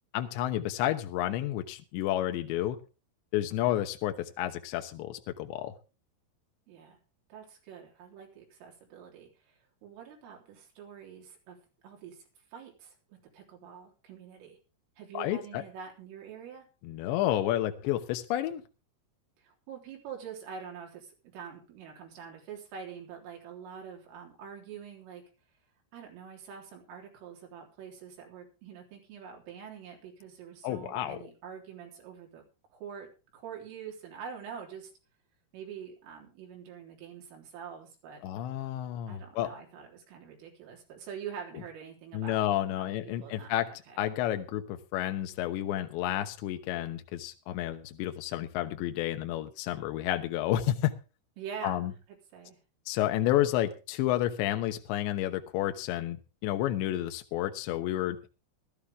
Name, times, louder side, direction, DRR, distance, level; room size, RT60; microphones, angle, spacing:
voice 1, 0.1-2.8 3.3-5.8 15.1-15.6 16.8-18.6 30.6-31.2 38.2-39.5 42.1-50.9 51.6-51.9 52.9-56.2 56.4-58.3, left 13 dB, 75° left, 6 dB, 2.9 m, -30 dB
voice 2, 6.7-7.0 7.3-9.3 9.8-11.6 11.8-12.2 12.5-12.9 13.3-14.6 15.0-16.6 19.4-25.2 25.9-32.4 32.7-34.9 35.5-38.2 39.1-42.4 42.8-44.0 51.4-51.9 52.3-52.6, right 7 dB, 75° right, 1 dB, 6.0 m, -45 dB
16.0 x 13.5 x 3.6 m, 0.32 s
omnidirectional pair, 5.9 m